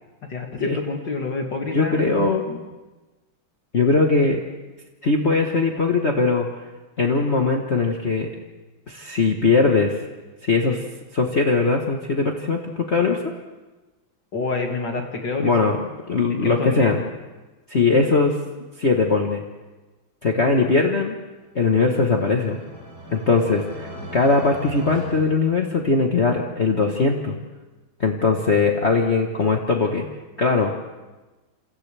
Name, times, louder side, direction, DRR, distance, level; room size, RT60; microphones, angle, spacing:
voice 1, 0.3-2.6 14.3-15.7 16.4-16.9, left 3 dB, 60° left, 1 dB, 2.8 m, -28 dB
voice 2, 1.7-2.4 3.7-4.4 5.0-6.5 7.0-8.3 8.9-10.0 10.4-10.8 11.1-13.2 15.4-15.8 16.1-17.0 17.7-18.3 18.8-19.4 20.2-21.2 21.5-22.6 23.1-27.4 28.0-30.0 30.4-30.7, left 4 dB, 35° left, 1 dB, 1.3 m, -20 dB
sound 1, 21.8-26.2, right 1 dB, 50° right, 4.6 m, -38 dB
28.5 x 27.5 x 3.4 m, 1.2 s
omnidirectional pair, 2.3 m